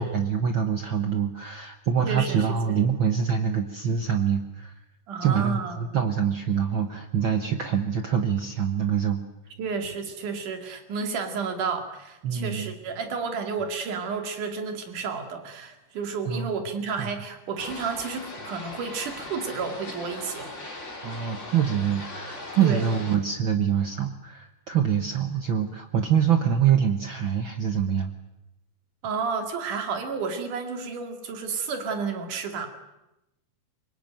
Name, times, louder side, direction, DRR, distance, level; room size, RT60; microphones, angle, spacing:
voice 1, 0.0-4.7 5.2-9.2 12.2-12.7 16.2-16.5 17.0-17.1 21.0-28.1, right 8 dB, 55° right, 6 dB, 1.5 m, -25 dB
voice 2, 2.0-2.9 5.1-5.9 9.6-20.5 22.6-22.9 29.0-32.7, right 5 dB, 75° right, 6 dB, 4.0 m, -31 dB
sound 1, 17.6-23.2, left 2 dB, 20° left, 3.6 m, -39 dB
25.0 x 21.5 x 9.1 m, 0.94 s
omnidirectional pair, 3.6 m